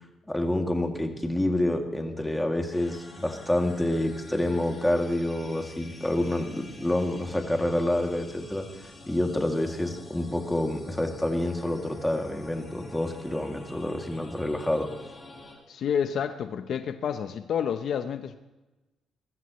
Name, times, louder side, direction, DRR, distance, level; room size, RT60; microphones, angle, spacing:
voice 1, 0.3-8.7 9.1-14.9, left 1 dB, 10° left, 2 dB, 2.5 m, -28 dB
sound 1, 2.7-15.5, left 2 dB, 25° left, 6.5 m, -48 dB
voice 2, 15.7-18.4, left 8 dB, 65° left, 9 dB, 0.8 m, -29 dB
22.5 x 14.0 x 3.2 m, 1.1 s
cardioid pair, 90°, 0 cm